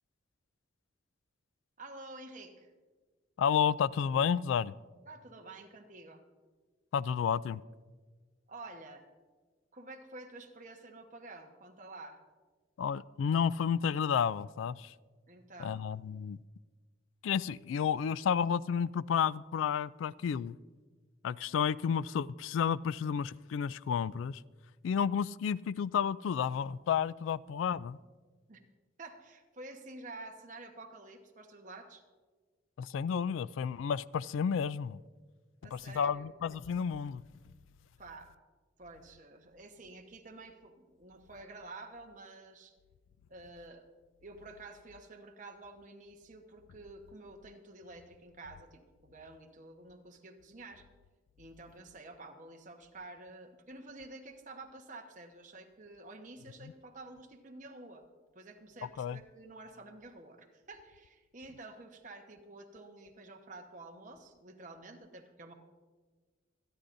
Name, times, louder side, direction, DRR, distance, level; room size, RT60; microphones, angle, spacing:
voice 1, 1.8-2.7 5.1-6.2 8.5-9.1 9.7-12.2 15.3-15.8 28.5-28.6 29.0-32.0 35.6-36.2 38.0-38.4 38.8-42.8 43.3-43.9 44.2-50.8 51.4-58.0 58.3-65.5, right 2 dB, 40° right, 1.1 m, -50 dB
voice 2, 3.4-4.7 6.9-7.6 12.8-15.0 15.6-16.4 17.2-20.6 21.2-24.4 24.8-28.0 32.8-35.0 35.7-37.2 56.6-56.7 59.0-59.2, left 7 dB, 85° left, 0.3 m, -31 dB
26.0 x 9.9 x 2.6 m
head